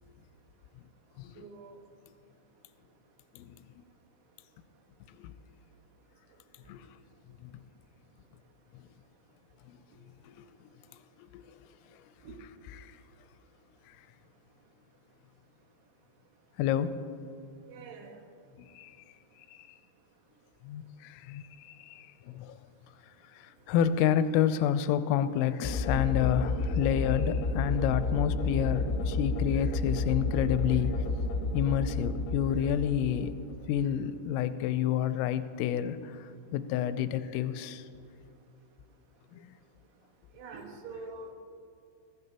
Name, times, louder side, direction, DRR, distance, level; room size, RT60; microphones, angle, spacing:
voice 1, 1.4-1.8 12.3-12.4 17.7-18.2 40.4-41.3, right 3 dB, 70° right, 2 dB, 3.6 m, -44 dB
voice 2, 16.6-17.0 18.6-19.0 19.5-19.7 20.6-22.6 23.4-30.9 31.5-33.3 33.7-37.8 39.3-39.5, left 10 dB, 90° left, 11 dB, 3.2 m, -29 dB
sound 1, 25.6-33.8, left 2 dB, 65° left, 3.1 m, -31 dB
21.5 x 15.5 x 2.9 m, 2.5 s
omnidirectional pair, 5.8 m